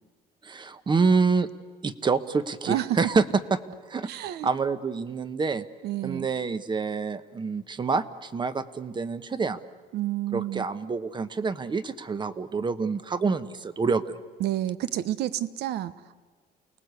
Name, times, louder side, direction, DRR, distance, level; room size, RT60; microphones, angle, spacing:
voice 1, 0.4-1.5 1.8-3.2 3.9-4.1 4.4-5.6 6.0-9.6 10.3-14.2, right 4 dB, 25° right, 12 dB, 1.1 m, -27 dB
voice 2, 2.7-3.0 4.0-4.5 5.8-6.3 9.9-10.7 14.4-15.9, right 13 dB, 75° right, 14 dB, 1.0 m, -29 dB
29.0 x 19.0 x 8.2 m, 1.4 s
cardioid pair, 110°, 17 cm